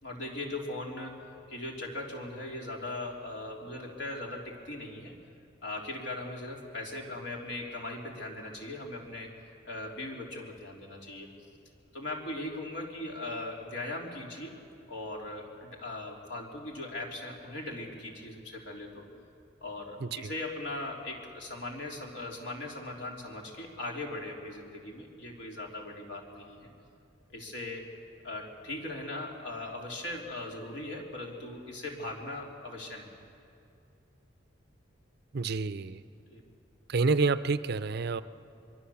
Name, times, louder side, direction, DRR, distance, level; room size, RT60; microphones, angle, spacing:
voice 1, 0.0-5.1 5.6-9.3 9.6-11.3 11.9-14.5 14.9-19.1 19.6-26.7 27.3-27.9 28.2-33.1 36.3-36.4, left 2 dB, 60° left, 0 dB, 3.5 m, -39 dB
voice 2, 20.0-20.3 35.3-36.0 36.9-38.2, right 4 dB, 55° right, 13 dB, 0.6 m, -28 dB
25.0 x 23.0 x 7.2 m, 2.6 s
head